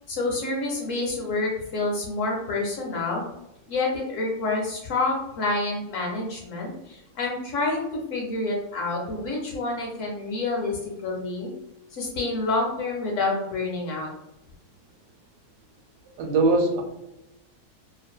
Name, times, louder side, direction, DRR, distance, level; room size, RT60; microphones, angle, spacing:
voice 1, 0.1-3.2 3.7-11.5 11.9-14.1, left 3 dB, 65° left, -1 dB, 0.8 m, -28 dB
voice 2, 16.2-16.8, right 2 dB, 85° right, 3 dB, 1.1 m, -21 dB
2.5 x 2.3 x 2.2 m, 0.89 s
omnidirectional pair, 1.6 m